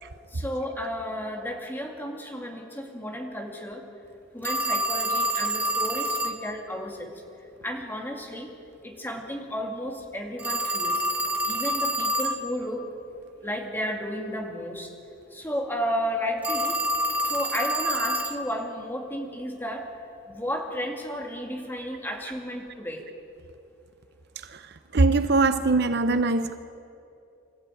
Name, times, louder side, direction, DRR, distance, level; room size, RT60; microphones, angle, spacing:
voice 1, 0.3-3.8 4.3-7.2 7.6-8.5 8.8-11.0 11.5-12.9 13.4-14.9 15.3-16.8 17.2-19.9 20.3-23.0, equal, 10° left, 1 dB, 2.3 m, -33 dB
Telephone, 4.4-6.4 10.4-12.4 16.4-18.4, right 1 dB, 10° right, 1.1 m, -27 dB
voice 2, 24.9-26.6, right 3 dB, 50° right, 11 dB, 0.7 m, -21 dB
24.0 x 14.0 x 9.1 m, 2.7 s
head